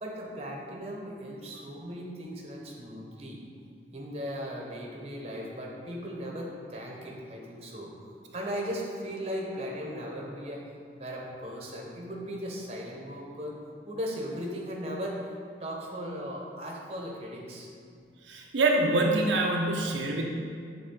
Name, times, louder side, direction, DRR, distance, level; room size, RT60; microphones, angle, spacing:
voice 1, 0.0-3.4 3.9-8.1 8.3-10.6 11.0-13.6 13.9-15.2 15.6-17.7, equal, 35° right, -2 dB, 0.9 m, -37 dB
voice 2, 18.3-20.2, right 2 dB, 85° right, 0 dB, 0.7 m, -25 dB
7.9 x 3.7 x 3.8 m, 2.2 s
head